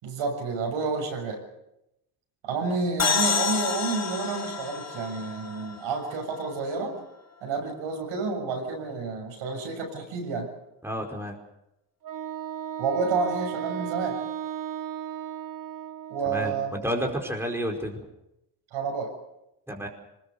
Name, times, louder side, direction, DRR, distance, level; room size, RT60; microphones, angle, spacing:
voice 1, 0.0-1.4 2.4-7.0 7.4-10.5 12.8-14.2 16.1-16.8 18.7-19.1, right 4 dB, 70° right, 2 dB, 6.9 m, -30 dB
sound 1, 3.0-6.6, left 5 dB, 30° left, 1.7 m, -29 dB
voice 2, 10.8-11.4 16.2-18.1 19.7-19.9, equal, 5° right, 1 dB, 4.8 m, -30 dB
Wind instrument woodwind instrument, 12.0-16.7, right 10 dB, 40° right, 1.3 m, -35 dB
23.0 x 21.0 x 6.8 m, 0.86 s
supercardioid pair, 75°, 49 cm